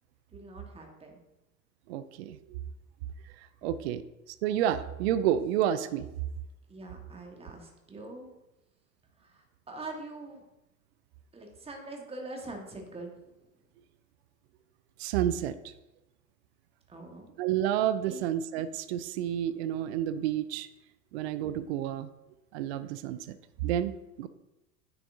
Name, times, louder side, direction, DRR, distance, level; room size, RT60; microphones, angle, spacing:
voice 1, 0.3-1.2 6.7-8.3 9.2-10.4 11.3-13.2 16.9-17.3 18.1-18.3, right 2 dB, 15° right, 2 dB, 1.4 m, -43 dB
voice 2, 1.9-2.6 3.6-4.0 4.4-6.1 15.0-15.7 17.4-20.7 21.1-22.1 22.5-23.4 23.6-23.9 24.2-24.3, right 11 dB, 45° right, 13 dB, 0.5 m, -30 dB
9.9 x 5.9 x 2.6 m, 0.95 s
figure-of-eight pair, 85°, 45 cm